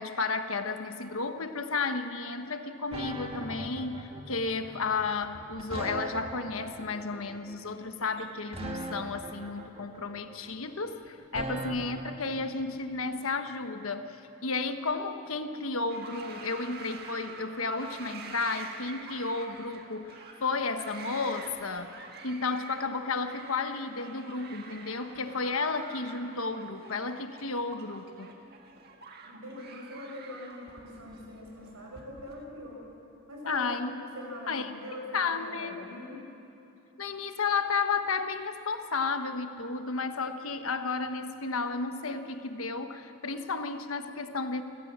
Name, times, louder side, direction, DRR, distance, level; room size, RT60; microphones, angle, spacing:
voice 1, 0.0-14.2 14.4-21.9 22.2-28.3 33.5-34.0 34.5-35.8 37.0-44.6, left 4 dB, 75° left, 8 dB, 1.2 m, -33 dB
sound 1, 2.9-12.5, right 2 dB, 25° right, 1.8 m, -40 dB
sound 2, 15.9-32.4, right 4 dB, 45° right, 1.8 m, -47 dB
voice 2, 29.2-32.8 33.3-36.2, left 1 dB, 90° right, 0 dB, 6.2 m, -43 dB
28.0 x 15.5 x 7.4 m, 2.8 s
head